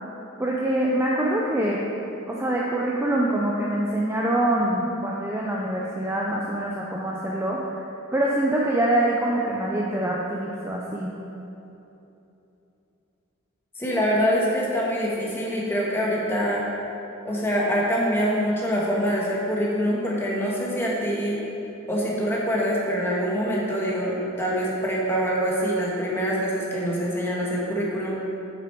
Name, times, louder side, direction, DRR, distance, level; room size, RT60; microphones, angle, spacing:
voice 1, 0.4-1.8 2.3-7.6 8.1-11.1, right 1 dB, 10° right, -3 dB, 0.5 m, -24 dB
voice 2, 13.8-16.6 17.2-21.4 21.9-28.1, equal, 10° left, -5 dB, 1.4 m, -25 dB
8.8 x 6.9 x 4.5 m, 2.9 s
head